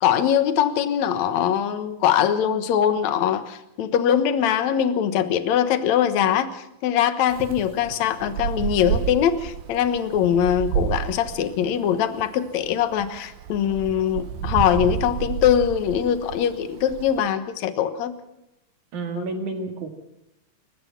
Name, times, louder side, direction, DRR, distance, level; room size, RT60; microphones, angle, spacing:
voice 1, 0.0-18.1 19.2-19.3, left 9 dB, 65° left, 10 dB, 1.9 m, -22 dB
Wind, 7.3-17.2, right 9 dB, 75° right, 2.7 m, -31 dB
voice 2, 18.9-19.9, right 3 dB, 50° right, 4 dB, 3.4 m, -30 dB
29.0 x 15.5 x 6.0 m, 0.86 s
omnidirectional pair, 4.8 m